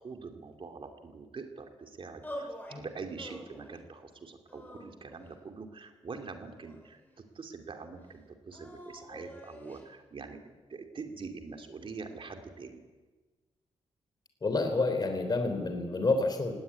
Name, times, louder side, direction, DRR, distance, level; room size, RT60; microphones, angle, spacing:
voice 1, 0.0-2.5 2.7-10.4 10.7-12.8, right 4 dB, 50° right, 5 dB, 2.6 m, -44 dB
sound 1, 2.2-2.8 3.2-3.8 4.5-5.4 6.1-7.1 8.5-9.9, equal, 15° left, 6.0 m, -46 dB
voice 2, 14.4-16.5, left 3 dB, 35° left, 6 dB, 3.4 m, -29 dB
19.0 x 17.5 x 9.6 m, 1.2 s
wide cardioid pair, 110°, 12 cm